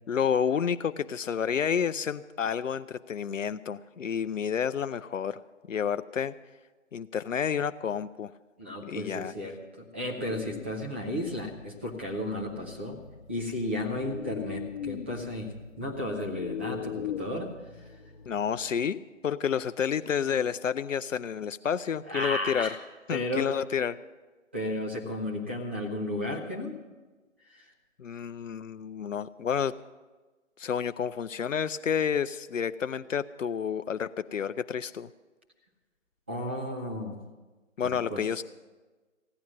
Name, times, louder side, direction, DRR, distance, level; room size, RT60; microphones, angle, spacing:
voice 1, 0.1-5.4 5.7-6.3 6.9-8.3 8.9-9.3 18.3-22.7 23.1-24.0 28.0-29.7 30.6-35.1 37.8-38.4, left 7 dB, 75° left, 12 dB, 0.5 m, -30 dB
voice 2, 8.6-13.0 13.3-17.5 22.1-22.8 23.1-23.5 24.5-26.7 27.5-27.7 36.3-37.2 37.8-38.2, left 1 dB, 10° right, -1 dB, 0.6 m, -33 dB
sound 1, 10.2-18.9, left 9 dB, 35° left, 1.0 m, -41 dB
16.0 x 10.5 x 6.1 m, 1.3 s
figure-of-eight pair, 145°, 39 cm